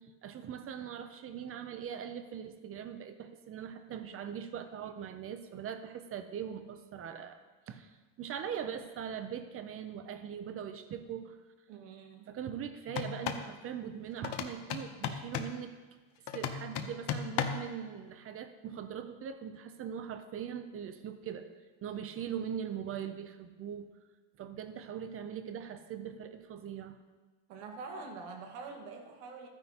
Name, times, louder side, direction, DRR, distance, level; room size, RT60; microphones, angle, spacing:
voice 1, 0.0-11.4 12.3-15.7 16.3-21.4 21.8-23.9 24.4-27.0, right 8 dB, 30° right, 9 dB, 0.4 m, -41 dB
voice 2, 11.7-12.4 27.5-29.5, right 4 dB, 85° right, 3 dB, 1.7 m, -45 dB
sound 1, 12.9-13.5 14.2-15.6 16.3-17.7, left 8 dB, 55° left, 0.8 m, -36 dB
13.5 x 9.7 x 2.8 m, 1.3 s
cardioid pair, 175°, 50 cm